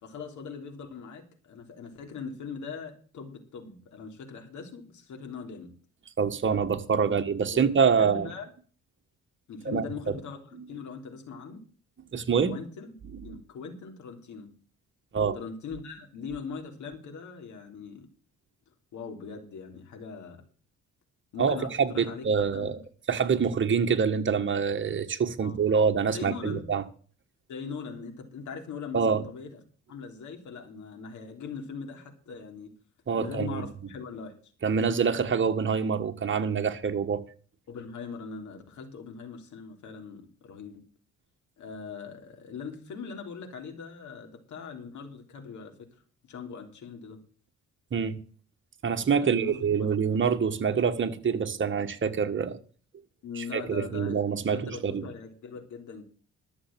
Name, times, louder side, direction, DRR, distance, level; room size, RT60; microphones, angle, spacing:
voice 1, 0.0-5.7 7.1-7.2 7.5-7.7 8.0-8.5 9.5-11.6 12.5-12.9 13.2-14.5 15.3-18.1 18.9-20.4 21.3-22.3 22.5-22.8 25.4-25.7 26.1-26.6 27.5-29.6 29.9-32.7 33.2-34.3 37.7-40.8 41.6-45.7 46.3-47.2 49.2-49.7 53.2-54.2 54.5-56.0, left 5 dB, 75° left, 3.5 m, -41 dB
voice 2, 6.2-8.3 9.6-10.1 12.1-12.5 13.3-13.4 15.1-15.4 21.4-22.8 23.1-26.8 28.9-29.2 33.1-33.6 34.6-37.2 47.9-48.2 48.8-52.6 53.4-55.0, right 6 dB, 40° right, 1.6 m, -26 dB
13.0 x 7.2 x 7.5 m
cardioid pair, 90°, 30 cm